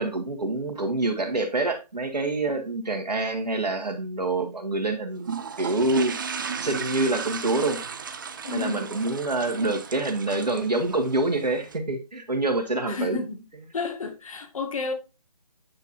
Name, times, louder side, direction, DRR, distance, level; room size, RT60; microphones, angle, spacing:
voice 1, 0.0-5.3 5.6-6.1 6.6-7.8 8.5-13.2, right 2 dB, 90° right, 2.0 m, -26 dB
sound 1, 5.2-11.8, right 6 dB, 30° right, 0.6 m, -35 dB
voice 2, 8.4-8.9 12.8-13.4 13.7-14.9, left 4 dB, 55° left, 2.0 m, -31 dB
8.7 x 4.5 x 2.7 m
figure-of-eight pair, 155°, 20 cm